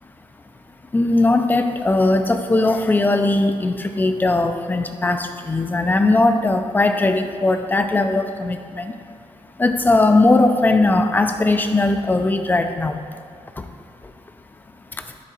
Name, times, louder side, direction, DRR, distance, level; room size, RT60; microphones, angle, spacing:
voice 1, 0.9-8.9 9.6-12.9, left 2 dB, 15° left, 7 dB, 0.4 m, -19 dB
10.0 x 3.6 x 4.2 m, 2.1 s
wide cardioid pair, 135°, 11 cm